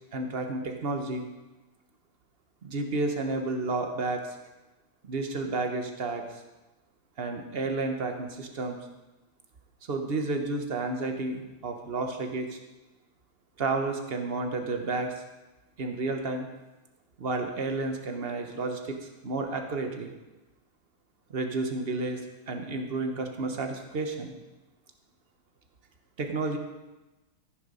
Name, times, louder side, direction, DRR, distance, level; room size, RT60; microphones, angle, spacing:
voice 1, 0.1-1.3 2.6-4.4 5.0-6.4 7.2-8.8 9.9-12.6 13.6-15.1 15.8-16.4 17.2-20.1 21.3-22.2 22.5-24.3 26.2-26.6, right 3 dB, 40° right, 4 dB, 1.0 m, -31 dB
14.5 x 6.7 x 5.5 m, 1.1 s
omnidirectional pair, 2.1 m